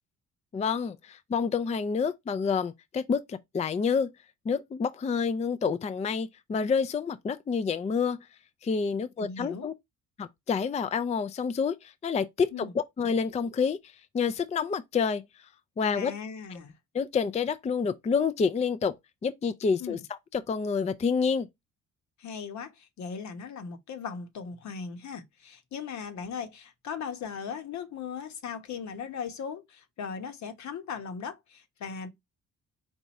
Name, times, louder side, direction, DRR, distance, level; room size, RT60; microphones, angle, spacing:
voice 1, 0.5-4.1 4.5-8.3 8.6-9.7 10.2-13.8 14.1-15.2 15.8-16.1 16.9-18.9 19.2-20.0 20.3-21.5, left 5 dB, 25° left, 0.4 m, -28 dB
voice 2, 9.2-9.7 12.5-12.8 15.9-16.8 19.8-20.0 22.2-32.1, left 6 dB, 65° left, 1.1 m, -38 dB
4.6 x 2.6 x 4.1 m
cardioid pair, 90°, 30 cm